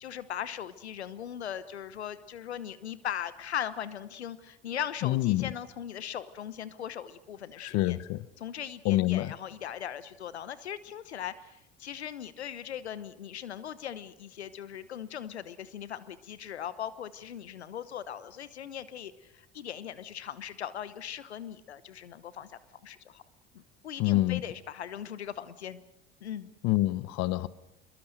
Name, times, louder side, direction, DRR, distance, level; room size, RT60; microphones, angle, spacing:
voice 1, 0.0-8.0 8.4-23.2 23.5-25.8 26.2-26.5, left 9 dB, 90° left, 1.1 m, -39 dB
voice 2, 5.0-5.5 7.6-8.2 8.8-9.3 24.0-24.4 26.6-27.5, left 17 dB, 55° left, 1.0 m, -26 dB
27.0 x 22.0 x 6.5 m
hypercardioid pair, 70°, 32 cm